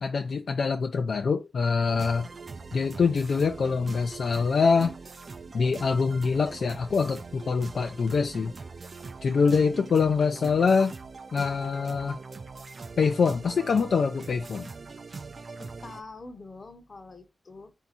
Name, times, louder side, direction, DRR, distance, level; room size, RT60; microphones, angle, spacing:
voice 1, 0.0-2.3 2.7-5.0 5.5-8.5 9.2-10.9 11.3-12.2 13.0-14.7, left 5 dB, 75° left, 0.3 m, -24 dB
sound 1, 1.9-16.0, right 4 dB, 55° right, 0.4 m, -42 dB
voice 2, 15.6-17.7, left 3 dB, 50° left, 0.8 m, -45 dB
3.5 x 2.7 x 4.2 m
cardioid pair, 65°, 0 cm